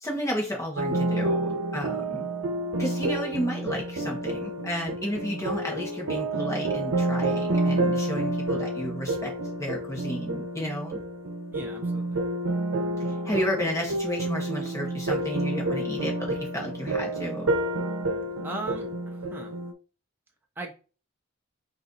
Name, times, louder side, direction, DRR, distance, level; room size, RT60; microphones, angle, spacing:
voice 1, 0.0-2.3 2.8-9.3 9.6-11.0 13.2-17.5, equal, 15° left, -1 dB, 1.2 m, -32 dB
sound 1, 0.8-19.7, right 2 dB, 85° right, 0.7 m, -29 dB
voice 2, 11.5-12.2 18.4-19.5 20.6-20.7, right 2 dB, 10° right, 0 dB, 0.6 m, -38 dB
4.3 x 2.6 x 3.9 m, 0.34 s
head